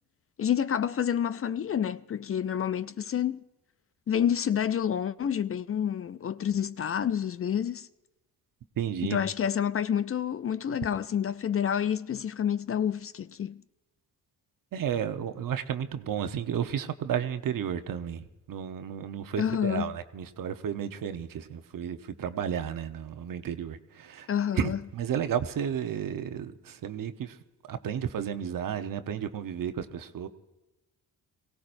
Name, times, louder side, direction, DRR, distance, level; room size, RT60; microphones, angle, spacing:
voice 1, 0.4-3.4 4.1-7.9 9.1-13.6 19.4-19.9 24.3-24.8, left 9 dB, 40° left, 0.5 m, -28 dB
voice 2, 8.8-9.2 14.7-24.3 24.6-27.4 27.7-30.3, right 8 dB, 60° right, 1.0 m, -32 dB
23.5 x 16.5 x 2.6 m
supercardioid pair, 50°, 37 cm